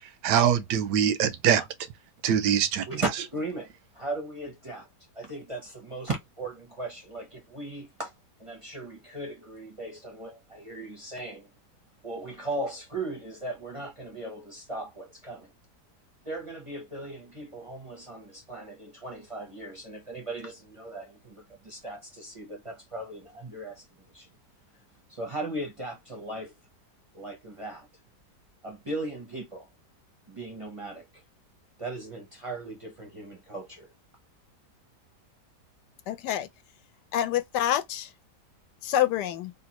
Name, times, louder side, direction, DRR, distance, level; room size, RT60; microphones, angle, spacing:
voice 1, 0.2-1.6 2.2-2.9, right 9 dB, 85° right, 1.2 m, -23 dB
voice 2, 2.9-4.9 5.1-8.1 8.4-11.5 12.0-15.5 16.2-24.3 25.1-26.5 27.1-27.9 28.6-29.7 30.3-31.2 31.8-33.9, right 2 dB, 40° right, 0.4 m, -37 dB
voice 3, 36.1-36.5 37.1-38.1 38.8-39.5, left 11 dB, 85° left, 1.2 m, -27 dB
3.3 x 2.5 x 2.8 m
omnidirectional pair, 1.8 m